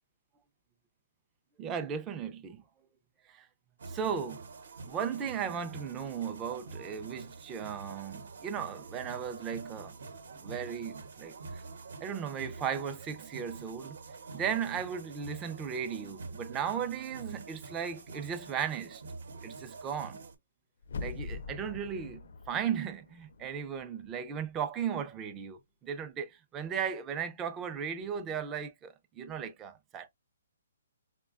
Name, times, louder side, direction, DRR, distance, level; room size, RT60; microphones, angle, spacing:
voice 1, 1.6-2.6 3.3-3.5 3.9-4.4 4.8-10.0 10.4-11.6 12.0-14.0 14.3-19.0 19.4-20.2 21.0-22.2 22.5-30.1, right 7 dB, 15° right, 0.4 m, -36 dB
sound 1, 3.8-20.4, right 4 dB, 65° right, 0.9 m, -46 dB
sound 2, 20.8-23.8 24.1-24.2, left 4 dB, 65° left, 0.4 m, -42 dB
5.0 x 2.2 x 2.3 m
hypercardioid pair, 155°, 0 cm